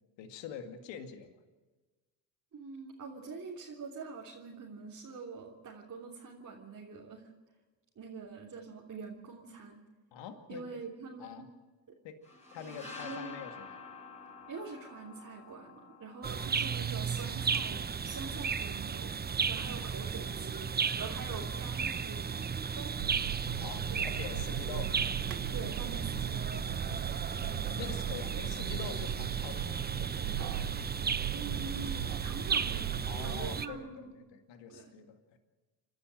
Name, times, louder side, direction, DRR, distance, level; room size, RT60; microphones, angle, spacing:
voice 1, 0.2-1.4 10.1-10.9 11.2-11.5 12.0-12.2 12.5-13.8 23.6-24.9 27.8-30.5 33.0-35.4, left 7 dB, 60° left, 6 dB, 2.3 m, -45 dB
voice 2, 2.5-7.2 7.9-9.8 10.5-11.4 11.9-12.0 12.6-13.4 14.5-23.0 23.9-24.1 25.5-26.5 31.3-34.1 34.7-34.9, right 4 dB, 35° right, -4 dB, 3.4 m, -45 dB
sound 1, 12.2-17.9, left 4 dB, 15° left, 7.2 m, -50 dB
sound 2, 16.2-33.7, right 6 dB, 20° right, 0.9 m, -34 dB
sound 3, 23.0-33.5, right 13 dB, 75° right, 1.5 m, -39 dB
28.5 x 12.5 x 7.8 m, 1.3 s
hypercardioid pair, 70°, 48 cm